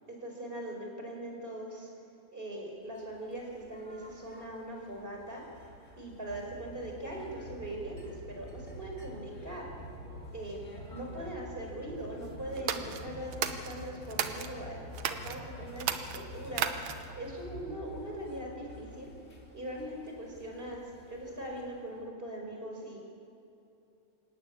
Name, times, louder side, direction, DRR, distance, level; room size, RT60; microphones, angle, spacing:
voice 1, 0.1-1.9 2.3-5.4 6.0-9.7 10.3-10.6 10.9-16.7 17.1-19.1 19.5-23.0, right 1 dB, 15° right, 1 dB, 4.6 m, -41 dB
sound 1, 2.9-22.1, left 1 dB, 20° left, 2.0 m, -48 dB
sound 2, 12.6-14.5 14.9-15.4 15.8-17.2, right 9 dB, 65° right, 1.8 m, -34 dB
26.0 x 14.0 x 9.7 m, 2.8 s
omnidirectional pair, 4.2 m